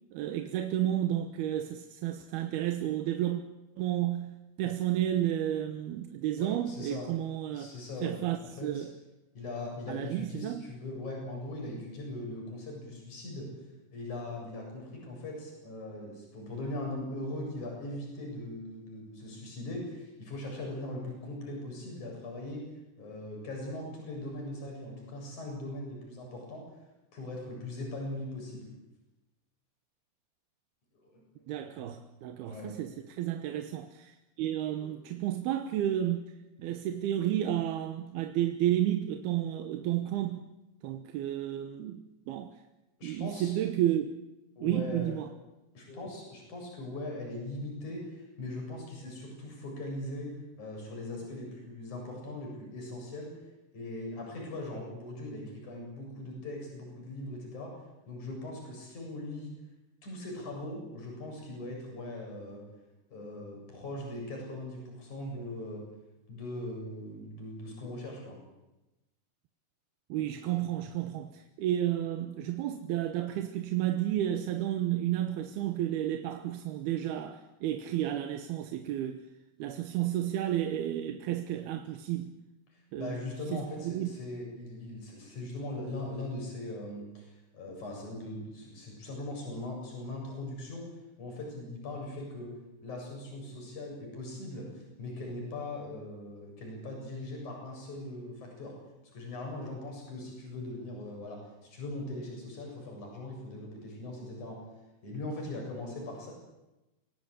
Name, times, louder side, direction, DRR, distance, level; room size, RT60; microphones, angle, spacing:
voice 1, 0.1-3.4 3.8-7.7 8.0-8.9 9.9-10.6 31.5-36.2 36.6-40.4 40.8-42.6 43.0-44.1 44.6-45.3 70.1-79.2 79.6-82.4 82.9-84.1, right 12 dB, 75° right, 2.9 m, -32 dB
voice 2, 6.4-7.1 7.5-8.9 9.3-13.5 13.9-22.6 23.0-26.6 27.1-28.7 31.0-31.5 32.5-32.7 34.8-35.0 43.0-43.5 44.6-45.2 45.7-50.3 50.6-53.3 53.7-57.7 58.1-59.5 60.0-62.6 63.1-65.8 66.3-68.4 82.7-90.9 91.2-92.5 92.8-98.7 99.1-104.6 105.0-106.3, left 1 dB, 45° left, 8.9 m, -40 dB
26.5 x 18.0 x 8.4 m
omnidirectional pair, 4.9 m